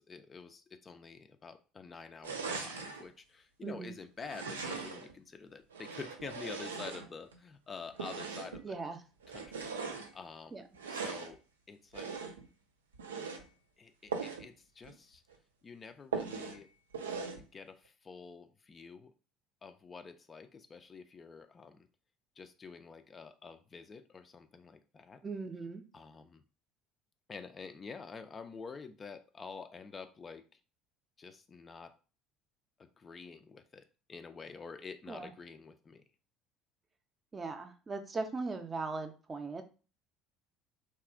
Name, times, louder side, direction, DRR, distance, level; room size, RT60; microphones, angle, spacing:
voice 1, 0.0-8.8 9.3-10.5 10.9-11.4 11.7-12.2 13.8-15.2 15.6-16.7 17.4-19.1 19.6-21.9 22.4-25.2 25.9-26.4 27.3-30.6 31.2-31.9 32.8-36.0, left 5 dB, 30° left, 8 dB, 0.3 m, -48 dB
sound 1, 2.2-3.0 4.2-5.1 5.7-7.4 7.9-8.7 9.2-10.1 10.7-11.3 11.9-12.5 12.9-13.4 14.1-14.5 14.8-14.9 15.3-15.4 16.1-16.6 16.9-17.4, right 5 dB, 80° right, 0.3 m, -40 dB
voice 2, 3.6-4.0 8.6-9.0 10.5-10.6 25.2-25.8 35.1-35.3 37.3-39.6, right 3 dB, 25° right, 6 dB, 0.5 m, -39 dB
2.9 x 2.3 x 2.4 m, 0.35 s
figure-of-eight pair, 60°, 0 cm